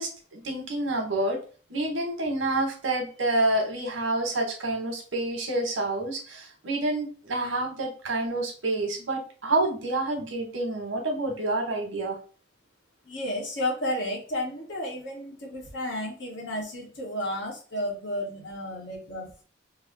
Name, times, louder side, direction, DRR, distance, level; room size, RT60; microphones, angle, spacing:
voice 1, 0.0-1.4 1.7-12.2, right 2 dB, 90° right, 3 dB, 1.0 m, -28 dB
voice 2, 13.0-19.4, left 1 dB, 70° left, -1 dB, 1.2 m, -32 dB
3.1 x 2.1 x 3.9 m, 0.37 s
head